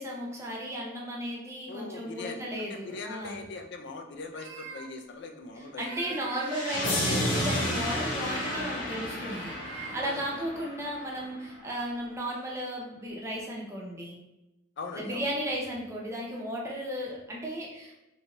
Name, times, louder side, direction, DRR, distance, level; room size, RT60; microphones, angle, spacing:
voice 1, 0.0-3.4 5.8-14.2 15.0-17.9, equal, 15° right, -3 dB, 0.6 m, -35 dB
voice 2, 1.7-6.2 10.0-10.4 14.8-15.3, left 3 dB, 60° left, 4 dB, 0.4 m, -41 dB
sound 1, 4.3-4.9 5.7-6.7 7.1-7.8 8.2-8.8 9.2-10.0 10.9-11.3 11.7-12.1, right 5 dB, 85° right, 0.4 m, -44 dB
sound 2, 6.4-11.4, left 1 dB, 80° left, 0.9 m, -31 dB
3.2 x 2.6 x 2.9 m, 0.94 s
head